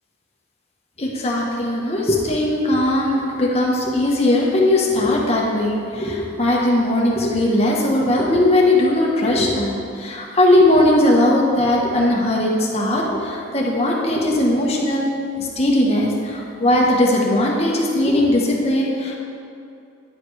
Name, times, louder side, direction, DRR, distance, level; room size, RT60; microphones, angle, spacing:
voice 1, 1.0-15.1 15.4-19.1, left 1 dB, 35° left, -2 dB, 1.1 m, -19 dB
9.8 x 5.0 x 4.8 m, 2.6 s
head